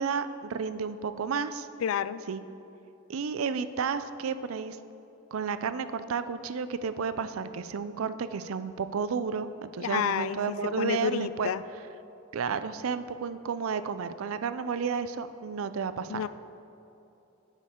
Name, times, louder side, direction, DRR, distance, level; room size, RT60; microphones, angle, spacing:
voice 1, 0.0-1.7 2.3-2.4 3.1-4.8 5.3-11.5 12.3-16.2, right 6 dB, 90° right, 12 dB, 0.4 m, -32 dB
voice 2, 1.8-2.2 9.8-11.6 16.1-16.3, left 8 dB, 85° left, 16 dB, 0.3 m, -30 dB
11.0 x 8.3 x 3.7 m, 2.9 s
head